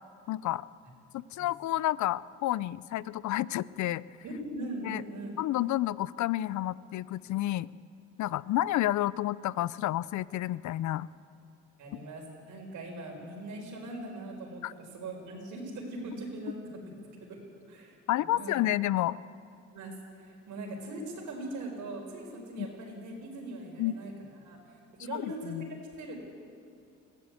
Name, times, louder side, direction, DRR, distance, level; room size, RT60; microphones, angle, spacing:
voice 1, 0.3-0.6 1.1-4.0 4.8-5.0 5.4-7.7 8.2-11.1 14.6-14.7 18.1-19.2 22.6-22.7 23.8-23.9 25.1-25.7, left 14 dB, 70° left, 19 dB, 0.5 m, -30 dB
voice 2, 4.2-5.3 11.8-14.6 14.9-16.9 17.2-17.4 17.7-17.9 18.3-18.6 19.7-19.9 20.2-24.1 24.4-25.5 26.0-26.2, right 2 dB, 75° right, 1 dB, 5.0 m, -40 dB
21.5 x 15.0 x 8.3 m, 2.4 s
cardioid pair, 90°, 30 cm